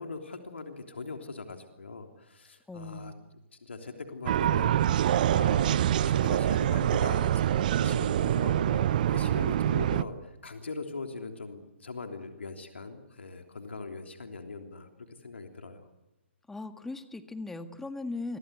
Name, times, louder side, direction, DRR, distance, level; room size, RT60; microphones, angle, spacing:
voice 1, 0.0-3.1 3.6-4.7 5.0-15.8, left 3 dB, 70° left, 4 dB, 3.2 m, -41 dB
voice 2, 2.7-3.1 16.5-18.4, left 3 dB, 5° left, 9 dB, 1.7 m, -38 dB
sound 1, 4.3-10.0, right 11 dB, 45° right, 0.9 m, -25 dB
29.0 x 23.5 x 8.1 m, 0.96 s
figure-of-eight pair, 130°, 7 cm